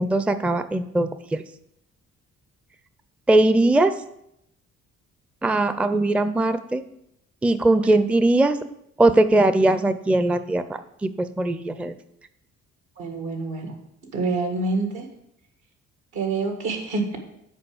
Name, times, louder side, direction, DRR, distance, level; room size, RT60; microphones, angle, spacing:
voice 1, 0.0-1.4 3.3-3.9 5.4-6.8 7.4-8.6 9.0-11.9, right 2 dB, 5° right, 11 dB, 0.4 m, -20 dB
voice 2, 13.0-13.8 14.1-15.1 16.1-17.2, right 3 dB, 80° right, 4 dB, 1.9 m, -27 dB
7.0 x 5.0 x 7.0 m, 0.78 s
cardioid pair, 90°, 30 cm